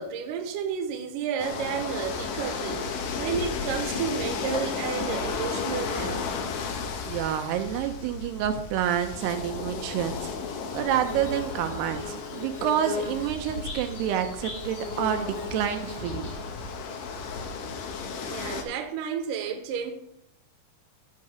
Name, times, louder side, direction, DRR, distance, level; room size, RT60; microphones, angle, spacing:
voice 1, 0.0-6.2 18.3-19.9, right 7 dB, 70° right, 2.4 m, -31 dB
sound 1, 1.4-18.6, left 5 dB, 70° left, 2.3 m, -34 dB
voice 2, 6.8-16.3, right 10 dB, 85° right, 2.8 m, -29 dB
Bird / Buzz, 10.2-17.9, left 4 dB, 50° left, 3.6 m, -39 dB
14.0 x 4.8 x 5.0 m
omnidirectional pair, 4.6 m